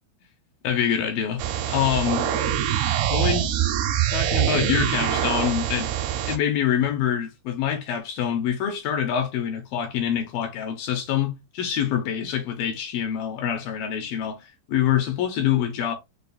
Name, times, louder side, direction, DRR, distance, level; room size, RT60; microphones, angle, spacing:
voice 1, 0.6-1.4 1.7-2.3 3.1-3.5 4.1-5.9 6.3-15.9, left 9 dB, 80° left, 2.3 m, -25 dB
sound 1, 1.4-6.4, right 10 dB, 80° right, 2.6 m, -24 dB
6.8 x 2.4 x 2.3 m
omnidirectional pair, 4.6 m